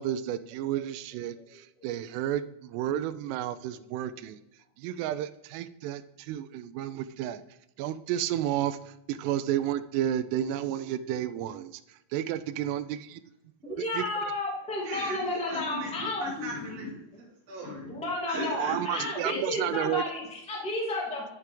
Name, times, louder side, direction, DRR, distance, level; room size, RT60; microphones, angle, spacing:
voice 1, 0.0-4.4 4.8-7.4 7.8-11.8 12.1-13.2 13.7-14.3 18.6-20.0, right 11 dB, 85° right, 2.5 m, -32 dB
voice 2, 13.6-16.2 17.9-21.2, left 2 dB, 5° left, 0.5 m, -32 dB
voice 3, 14.8-17.0 17.5-18.0 18.3-19.4, equal, 45° right, 4.1 m, -37 dB
13.5 x 4.7 x 3.8 m
omnidirectional pair, 5.2 m